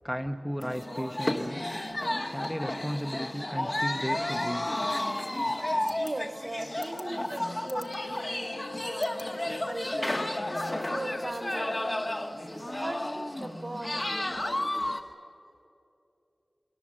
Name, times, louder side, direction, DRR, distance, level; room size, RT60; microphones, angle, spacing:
voice 1, 0.0-1.6 2.3-4.7, equal, ahead, 5 dB, 0.9 m, -34 dB
sound 1, 0.6-15.0, left 1 dB, 30° left, 1.4 m, -32 dB
voice 2, 5.9-9.1 9.4-10.2 10.9-14.4, right 1 dB, 40° right, 6 dB, 1.8 m, -39 dB
Wind instrument woodwind instrument, 7.6-12.4, left 3 dB, 60° left, 2.6 m, -43 dB
29.0 x 21.5 x 7.4 m, 2.7 s
wide cardioid pair, 70°, 0 cm